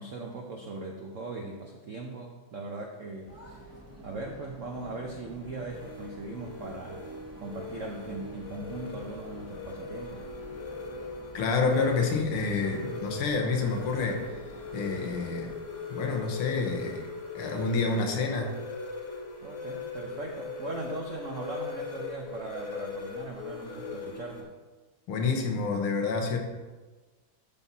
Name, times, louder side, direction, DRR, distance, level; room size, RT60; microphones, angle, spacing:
voice 1, 0.0-3.3 4.0-7.0 7.4-10.2 19.4-24.5, right 3 dB, 75° right, 1 dB, 0.7 m, -39 dB
sound 1, 3.3-15.6, equal, 10° left, 0.8 m, -50 dB
sound 2, 4.7-24.4, left 4 dB, 45° left, 1.1 m, -40 dB
voice 2, 11.3-14.2 14.7-15.6 15.9-17.1 17.4-18.5 25.1-26.4, left 4 dB, 85° left, 2 dB, 1.9 m, -28 dB
12.0 x 4.2 x 4.0 m, 1.2 s
omnidirectional pair, 2.3 m